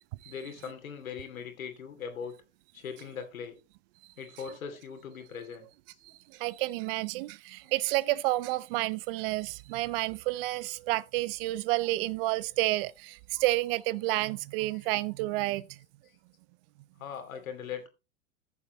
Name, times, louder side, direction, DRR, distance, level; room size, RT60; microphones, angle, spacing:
voice 1, 0.2-2.4 2.7-3.6 4.2-5.7 17.0-17.9, left 7 dB, 85° left, 2.7 m, -40 dB
voice 2, 6.0-15.8, right 19 dB, 45° right, 0.5 m, -30 dB
14.0 x 7.2 x 3.0 m
hypercardioid pair, 115°, 40 cm